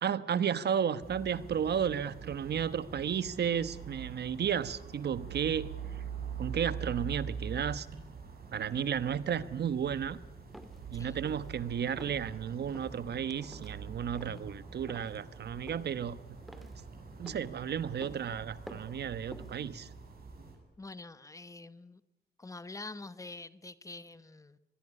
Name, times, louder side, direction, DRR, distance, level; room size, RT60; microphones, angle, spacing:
voice 1, 0.0-6.0 6.4-7.9 8.5-10.2 10.9-16.2 16.6-16.7 17.2-19.9, right 8 dB, 80° right, 15 dB, 1.2 m, -33 dB
sound 1, 1.0-20.6, right 6 dB, 65° right, 7.9 m, -45 dB
sound 2, 10.5-10.8 11.2-11.6 12.0-12.2 12.7-13.0 13.4-13.8 14.2-14.5 14.9-15.2 15.7-16.0 16.5-16.8 17.3-17.5 18.0-18.3 18.7-19.0 19.3-19.6, equal, ahead, 2.5 m, -49 dB
voice 2, 20.8-22.0 22.4-24.6, left 3 dB, 20° left, 14 dB, 1.0 m, -46 dB
25.0 x 21.0 x 9.9 m, 0.92 s
wide cardioid pair, 180°, 17 cm